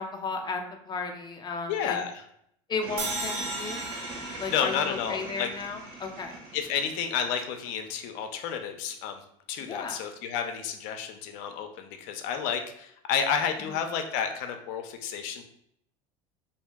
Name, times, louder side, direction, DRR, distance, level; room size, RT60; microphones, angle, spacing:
voice 1, 0.0-2.0 2.7-3.9 4.4-6.4 9.6-10.0, left 4 dB, 30° left, 3 dB, 0.6 m, -34 dB
voice 2, 1.7-2.2 4.2-5.5 6.5-15.4, left 7 dB, 65° left, 6 dB, 0.6 m, -31 dB
sound 1, 2.8-8.2, right 2 dB, 70° right, 0.9 m, -42 dB
sound 2, 3.0-6.2, right 2 dB, 35° right, 1.1 m, -36 dB
2.9 x 2.6 x 3.5 m, 0.73 s
supercardioid pair, 95°, 16 cm